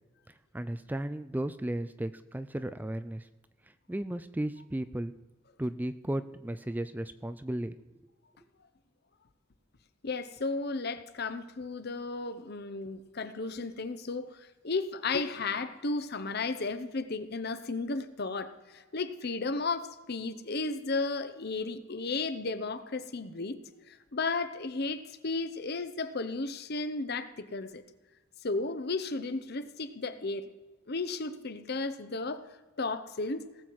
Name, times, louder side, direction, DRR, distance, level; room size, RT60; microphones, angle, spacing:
voice 1, 0.5-3.3 3.9-5.1 5.6-7.8, right 1 dB, 10° right, 12 dB, 0.3 m, -35 dB
voice 2, 10.0-23.6 23.9-27.8 28.4-30.5 30.9-32.4 32.8-33.5, left 3 dB, 50° left, 11 dB, 0.8 m, -34 dB
18.5 x 7.5 x 4.6 m, 1.2 s
head